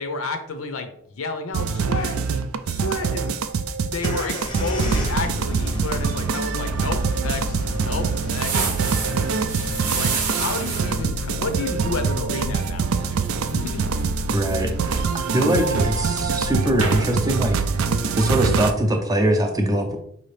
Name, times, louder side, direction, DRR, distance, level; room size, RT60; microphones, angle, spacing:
voice 1, 0.0-2.3 2.7-3.4 3.8-8.7 9.6-13.2 13.5-13.9, left 3 dB, 70° left, 7 dB, 0.6 m, -31 dB
sound 1, 1.5-18.7, right 5 dB, 70° right, 0.4 m, -25 dB
sound 2, 4.0-11.0, equal, 20° left, 0.6 m, -32 dB
sound 3, 8.3-12.0 12.4-12.7 13.2-14.2 14.4-16.0 16.4-16.6 16.8-17.2, right 4 dB, 90° right, 0.9 m, -29 dB
voice 2, 14.3-15.1 15.3-17.8 18.1-20.0, right 1 dB, 15° right, 4 dB, 0.5 m, -22 dB
5.1 x 2.8 x 3.2 m, 0.71 s
head